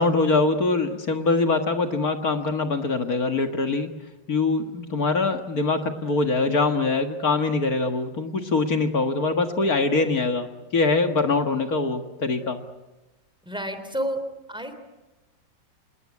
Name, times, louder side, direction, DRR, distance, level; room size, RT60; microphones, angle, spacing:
voice 1, 0.0-3.9 4.3-12.6, left 3 dB, 50° left, 6 dB, 2.1 m, -23 dB
voice 2, 13.4-14.2 14.5-14.8, right 1 dB, ahead, 9 dB, 3.2 m, -30 dB
28.0 x 19.0 x 9.8 m, 1.1 s
omnidirectional pair, 2.0 m